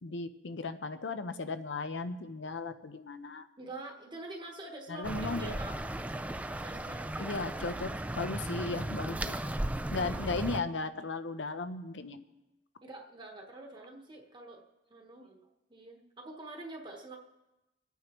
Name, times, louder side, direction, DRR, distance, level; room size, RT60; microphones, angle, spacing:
voice 1, 0.0-3.5 4.9-5.5 7.2-9.3 9.9-12.2, left 3 dB, 70° left, 10 dB, 0.7 m, -36 dB
voice 2, 3.6-5.7 6.5-7.4 12.8-14.6 14.9-17.2, right 2 dB, 25° right, 1 dB, 1.1 m, -46 dB
sound 1, 5.0-10.6, right 1 dB, 10° right, 0.4 m, -36 dB
27.0 x 9.3 x 3.1 m, 1.0 s
head